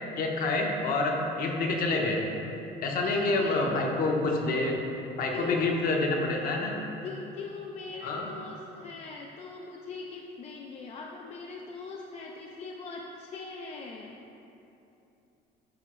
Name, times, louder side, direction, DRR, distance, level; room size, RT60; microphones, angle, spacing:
voice 1, 0.2-2.2 2.8-4.8 5.2-6.7 8.0-8.3, left 2 dB, 50° left, 0 dB, 0.9 m, -27 dB
voice 2, 3.0-3.6 5.3-5.6 5.8-6.1 7.0-14.2, left 4 dB, 35° left, 0 dB, 0.4 m, -40 dB
11.5 x 3.9 x 3.0 m, 2.9 s
cardioid pair, 150°, 19 cm